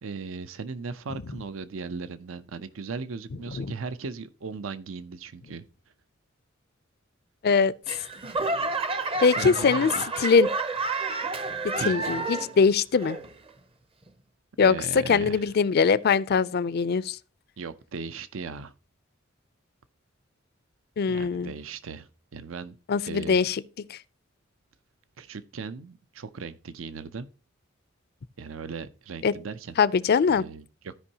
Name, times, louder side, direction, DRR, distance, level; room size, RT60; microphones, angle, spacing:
voice 1, 0.0-5.6 9.4-10.0 11.8-12.0 14.6-15.5 17.6-18.7 21.1-22.8 23.1-23.4 25.2-27.3 28.4-29.8 30.3-31.0, right 4 dB, 85° right, 0.6 m, -37 dB
Laughter / Clapping / Crowd, 7.9-12.6 13.0-13.5 14.1-14.2, right 3 dB, 30° right, 0.6 m, -30 dB
voice 2, 9.2-9.9 10.2-10.5 11.6-13.2 14.6-17.2 21.0-21.5 22.9-23.6 23.9-24.0 29.2-29.3 29.8-30.4, left 5 dB, 50° left, 0.4 m, -22 dB
15.5 x 5.4 x 2.8 m
head